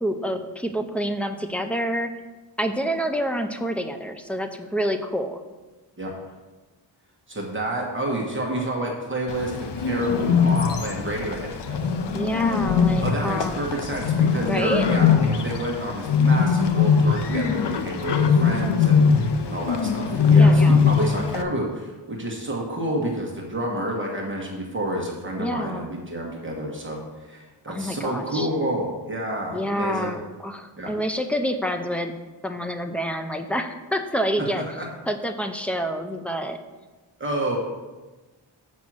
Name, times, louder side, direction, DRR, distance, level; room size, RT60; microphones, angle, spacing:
voice 1, 0.0-2.1 2.6-5.4 12.1-13.8 14.4-14.9 20.3-20.9 25.4-25.9 27.7-28.5 29.5-32.1 32.4-34.6 35.1-36.6, equal, 5° left, 6 dB, 0.4 m, -28 dB
voice 2, 7.3-11.9 13.0-27.0 27.3-30.1 30.8-30.9 34.4-34.9 37.2-37.6, right 1 dB, 25° right, -2 dB, 1.2 m, -29 dB
Bird, 9.3-21.4, left 5 dB, 65° left, 0.7 m, -21 dB
7.3 x 5.2 x 6.0 m, 1.2 s
wide cardioid pair, 175°, 46 cm